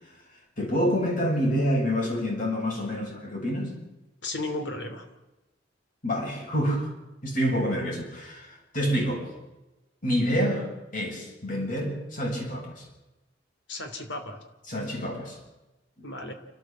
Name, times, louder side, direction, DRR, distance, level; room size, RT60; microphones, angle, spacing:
voice 1, 0.6-3.8 6.0-6.9 7.2-9.3 10.0-12.8 14.7-15.4, equal, 50° left, -1 dB, 7.5 m, -27 dB
voice 2, 4.2-5.0 13.7-14.4 16.0-16.3, left 2 dB, 85° left, 6 dB, 3.3 m, -34 dB
29.0 x 13.5 x 7.6 m, 1.0 s
head